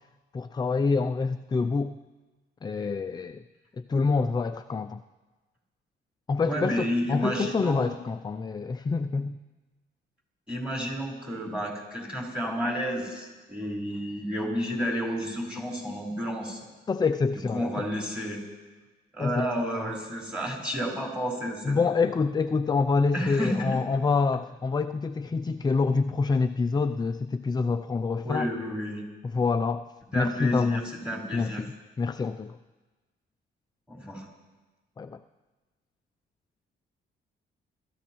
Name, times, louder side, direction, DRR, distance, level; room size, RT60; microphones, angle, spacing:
voice 1, 0.3-1.9 2.6-3.4 3.8-5.0 6.3-9.4 16.9-17.9 19.2-19.5 21.6-28.5 29.3-30.8 31.3-32.6 35.0-35.2, left 4 dB, 20° left, 8 dB, 0.4 m, -27 dB
voice 2, 6.4-7.9 10.5-16.6 17.5-18.4 19.1-21.9 23.1-23.8 28.2-29.0 30.1-31.6 33.9-34.3, equal, 5° right, -2 dB, 4.6 m, -31 dB
22.0 x 13.5 x 3.1 m, 1.3 s
cardioid pair, 90°, 20 cm